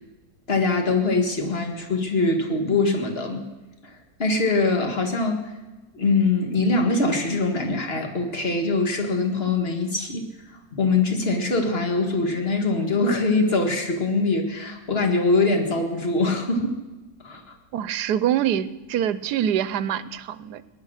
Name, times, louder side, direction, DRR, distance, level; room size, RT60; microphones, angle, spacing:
voice 1, 0.5-3.4 3.8-3.9 4.2-5.4 5.9-10.3 10.7-16.8 17.2-17.5, left 3 dB, 40° left, 4 dB, 2.0 m, -23 dB
voice 2, 17.7-20.6, right 10 dB, 85° right, 16 dB, 1.2 m, -25 dB
18.5 x 10.5 x 6.5 m, 1.1 s
omnidirectional pair, 1.7 m